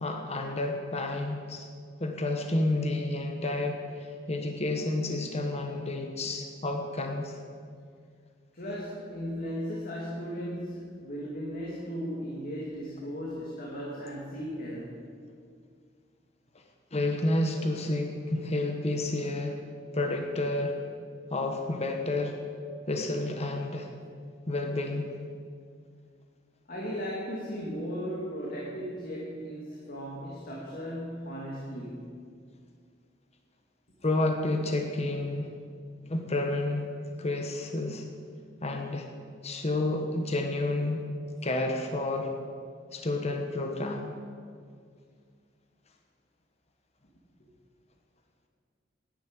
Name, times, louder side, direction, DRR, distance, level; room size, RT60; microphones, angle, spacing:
voice 1, 0.0-1.7 2.0-7.4 16.9-19.6 19.9-20.8 21.3-22.4 22.9-23.9 24.5-25.1 34.0-35.5 36.0-36.9 37.2-38.0 38.6-39.1 39.4-41.0 41.4-42.3 42.9-44.1, left 2 dB, 35° left, 3 dB, 1.2 m, -30 dB
voice 2, 8.5-15.0 26.7-32.2 47.4-47.5, equal, 50° left, -4 dB, 2.4 m, -36 dB
11.5 x 10.0 x 8.9 m, 2.1 s
head